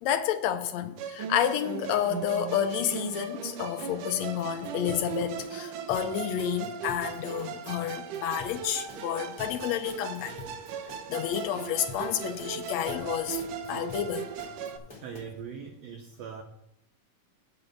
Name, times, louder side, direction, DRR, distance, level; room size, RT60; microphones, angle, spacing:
voice 1, 0.0-10.5 11.1-14.3, left 10 dB, 75° left, 1.7 m, -30 dB
Musical instrument, 1.0-14.8, right 7 dB, 85° right, 2.4 m, -38 dB
sound 1, 4.0-15.2, left 4 dB, 10° left, 2.4 m, -48 dB
voice 2, 15.0-16.4, right 6 dB, 70° right, 1.8 m, -41 dB
8.8 x 5.5 x 7.7 m
omnidirectional pair, 3.6 m